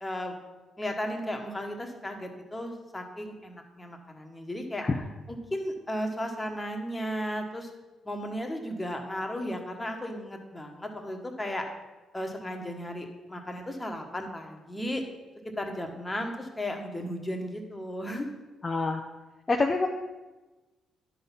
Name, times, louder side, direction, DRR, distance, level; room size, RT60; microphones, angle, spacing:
voice 1, 0.0-0.3 0.8-4.8 5.3-7.7 8.0-11.7 12.1-15.0 15.4-18.3, equal, 15° left, 3 dB, 1.4 m, -35 dB
voice 2, 18.6-19.0 19.5-19.9, left 3 dB, 30° left, 2 dB, 0.6 m, -26 dB
10.5 x 4.0 x 5.8 m, 1.2 s
cardioid pair, 70°, 0 cm